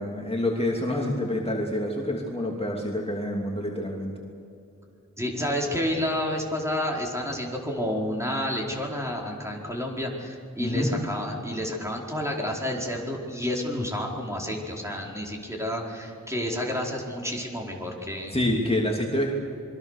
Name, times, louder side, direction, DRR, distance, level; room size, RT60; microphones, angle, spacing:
voice 1, 0.0-4.1 10.6-10.9 18.3-19.3, left 1 dB, 20° left, -1 dB, 2.8 m, -27 dB
voice 2, 5.2-18.3, left 1 dB, 10° right, -1 dB, 4.7 m, -30 dB
27.0 x 23.0 x 6.7 m, 2.7 s
wide cardioid pair, 55°, 29 cm